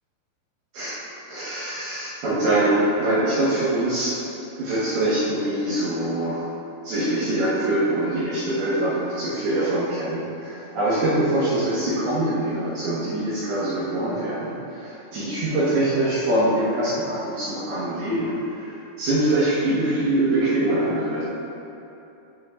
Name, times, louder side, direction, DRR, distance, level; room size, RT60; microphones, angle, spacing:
voice 1, 1.3-4.2 4.6-6.5 6.8-21.2, right 1 dB, 65° right, -10 dB, 2.7 m, -24 dB
16.0 x 5.5 x 2.4 m, 2.9 s
omnidirectional pair, 5.9 m